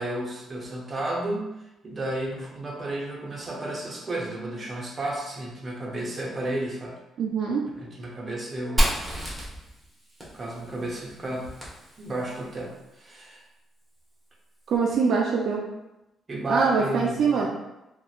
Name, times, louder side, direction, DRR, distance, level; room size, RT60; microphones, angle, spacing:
voice 1, 0.0-1.5 1.8-6.9 7.7-9.0 10.3-11.5 12.0-13.4 16.3-17.5, right 1 dB, 35° right, -2 dB, 0.6 m, -32 dB
voice 2, 7.2-7.6 14.7-15.6 16.5-17.5, right 5 dB, 70° right, -1 dB, 0.3 m, -23 dB
Fire, 8.8-12.4, equal, 10° right, 0.9 m, -30 dB
2.8 x 2.1 x 2.3 m, 0.95 s
cardioid pair, 90°, 0 cm